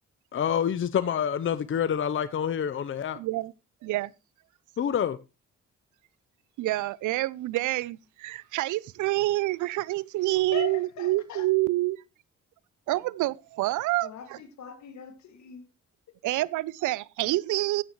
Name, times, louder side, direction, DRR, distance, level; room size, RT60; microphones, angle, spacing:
voice 1, 0.3-3.2 4.8-5.2, left 8 dB, 40° left, 0.7 m, -27 dB
voice 2, 3.2-3.5 3.8-4.1 6.6-12.0 12.9-14.4 16.2-17.8, right 18 dB, 85° right, 0.6 m, -27 dB
voice 3, 10.5-11.5 14.0-15.6, left 9 dB, 65° left, 2.2 m, -40 dB
14.0 x 9.2 x 3.1 m
cardioid pair, 90°, 30 cm